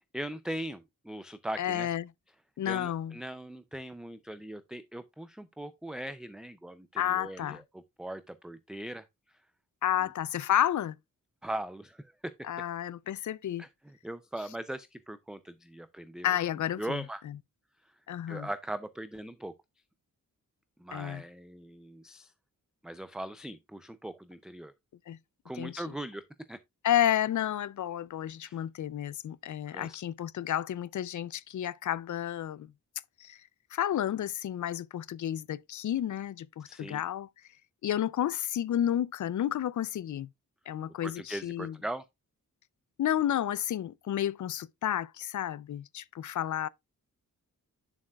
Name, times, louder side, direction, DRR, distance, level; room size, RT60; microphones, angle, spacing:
voice 1, 0.1-1.9 2.6-9.4 10.0-10.1 11.4-12.3 13.6-16.4 16.8-17.2 17.8-18.0 18.3-19.5 20.8-22.3 22.8-24.7 25.4-26.2 26.5-26.6 28.4-28.6 29.7-30.0 36.6-37.0 41.0-42.1, right 1 dB, ahead, 0.4 m, -40 dB
voice 2, 1.6-2.0 2.6-3.1 7.0-7.6 9.8-11.0 12.5-13.6 16.2-17.0 18.1-18.5 20.9-21.2 25.1-25.2 25.6-25.8 26.8-32.7 33.2-33.4 33.7-37.3 37.8-40.3 40.7-41.7 43.0-46.7, left 11 dB, 60° left, 0.4 m, -31 dB
8.9 x 7.2 x 2.3 m
wide cardioid pair, 160°, 34 cm